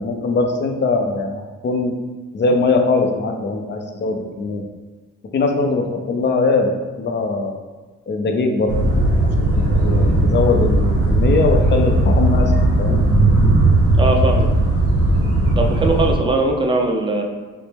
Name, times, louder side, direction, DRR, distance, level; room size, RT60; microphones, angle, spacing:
voice 1, 0.0-1.9 2.3-4.6 5.3-6.7 7.0-7.5 8.1-8.8 9.4-13.1, left 3 dB, 35° left, 4 dB, 0.5 m, -21 dB
sound 1, 8.7-16.1, right 2 dB, 50° right, 1.1 m, -16 dB
voice 2, 14.0-14.5 15.6-17.2, right 2 dB, 15° right, 2 dB, 0.5 m, -20 dB
4.1 x 2.1 x 3.3 m, 1.3 s
cardioid pair, 90°, 30 cm